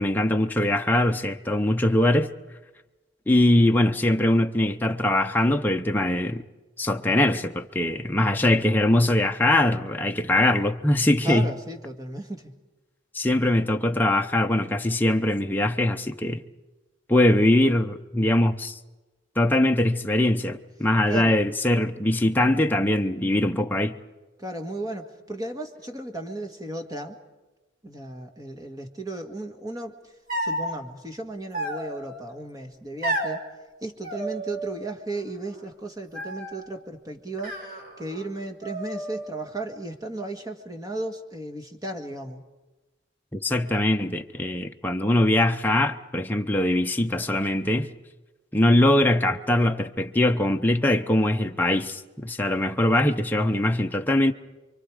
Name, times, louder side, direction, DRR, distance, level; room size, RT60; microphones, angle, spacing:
voice 1, 0.0-2.3 3.3-6.4 6.8-11.5 13.1-16.4 17.1-18.8 19.4-24.0 43.3-47.9 48.5-54.3, left 1 dB, 10° left, 0.7 m, -22 dB
voice 2, 11.2-12.5 21.1-21.4 24.4-27.2 27.8-30.1 30.4-33.4 33.8-42.4, right 2 dB, 20° right, 1.8 m, -35 dB
sound 1, 30.3-30.7 31.5-32.2 33.0-33.4 34.0-34.9 35.1-35.7 36.1-36.7 37.4-38.3 38.6-39.4, right 1 dB, 45° right, 4.1 m, -32 dB
29.5 x 24.0 x 4.9 m
head